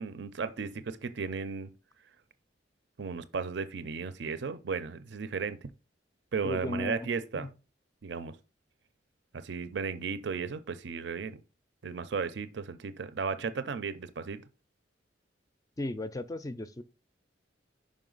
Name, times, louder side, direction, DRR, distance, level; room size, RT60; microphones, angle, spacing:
voice 1, 0.0-1.7 3.0-5.7 6.3-7.5 8.0-8.4 9.3-11.4 11.8-14.4, right 5 dB, 65° right, 0.5 m, -35 dB
voice 2, 6.4-7.1 7.3-7.5 15.8-16.8, left 1 dB, 20° left, 0.4 m, -35 dB
5.3 x 5.0 x 3.9 m
head